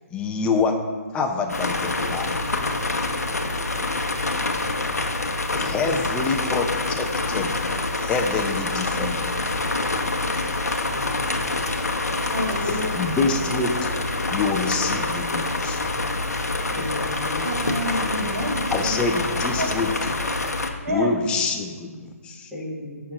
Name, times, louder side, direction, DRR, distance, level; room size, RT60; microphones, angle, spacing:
voice 1, 0.1-0.8 1.1-2.4 5.5-9.4 12.6-13.9 14.3-15.8 18.7-19.9 20.9-22.5, left 4 dB, 10° left, 3 dB, 0.7 m, -26 dB
sound 1, 1.5-20.7, left 2 dB, 85° left, 0.9 m, -26 dB
voice 2, 3.6-4.3 12.3-12.9 16.7-16.8 17.4-18.9 19.6-19.7 20.8-21.1, equal, 75° right, 0 dB, 1.6 m, -29 dB
voice 3, 10.7-11.3 16.8-17.6 22.5-23.1, left 1 dB, 10° right, -10 dB, 1.8 m, -36 dB
12.5 x 5.8 x 2.5 m, 1.5 s
figure-of-eight pair, 140°, 8 cm